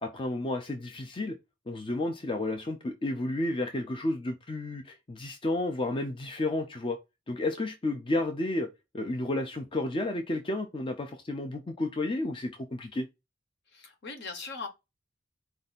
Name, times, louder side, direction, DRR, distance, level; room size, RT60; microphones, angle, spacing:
voice 1, 0.0-1.4 1.7-7.0 7.3-8.7 8.9-13.1, left 2 dB, 25° left, 0.5 m, -31 dB
voice 2, 13.7-14.7, left 4 dB, 60° left, 1.0 m, -39 dB
4.3 x 2.6 x 4.1 m
head